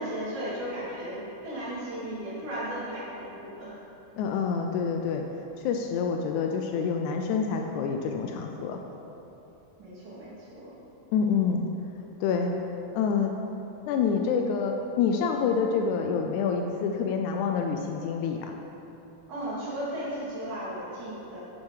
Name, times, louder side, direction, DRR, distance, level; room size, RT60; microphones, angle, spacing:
voice 1, 0.0-3.8 9.8-10.7 19.3-21.4, right 1 dB, 85° right, -10 dB, 4.0 m, -35 dB
voice 2, 4.2-5.3 5.6-8.8 11.1-11.6 12.2-12.5 12.9-13.3 13.9-18.6, left 6 dB, 85° left, 3 dB, 2.0 m, -27 dB
8.6 x 7.4 x 4.8 m, 3.0 s
omnidirectional pair, 3.4 m